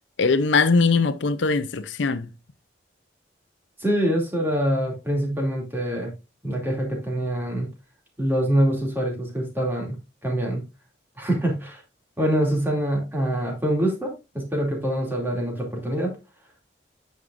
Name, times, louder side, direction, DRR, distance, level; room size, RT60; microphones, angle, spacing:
voice 1, 0.2-2.3, left 4 dB, 80° left, 0.6 m, -21 dB
voice 2, 3.8-6.1 6.4-7.7 8.2-10.0 10.2-10.6 11.2-11.8 12.2-16.1, right 1 dB, 10° right, 2.6 m, -25 dB
9.4 x 6.5 x 2.5 m
head